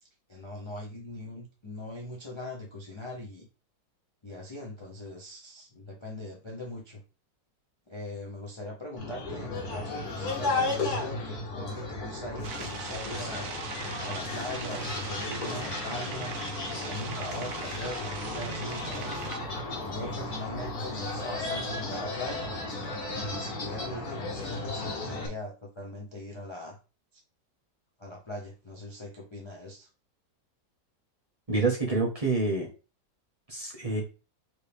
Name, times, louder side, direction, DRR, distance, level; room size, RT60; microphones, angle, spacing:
voice 1, 0.0-3.5 4.2-7.0 7.9-13.5 14.0-16.4 16.8-19.3 19.9-22.5 23.1-26.8 27.1-27.2 28.0-29.9, left 1 dB, 40° left, -1 dB, 0.4 m, -40 dB
sound 1, 9.0-25.3, left 2 dB, 60° left, 1.6 m, -34 dB
sound 2, 12.4-19.4, right 7 dB, 65° right, 0.9 m, -41 dB
voice 2, 31.5-32.7 33.5-34.0, right 3 dB, 25° right, -2 dB, 1.0 m, -27 dB
4.5 x 3.1 x 3.4 m, 0.32 s
omnidirectional pair, 1.9 m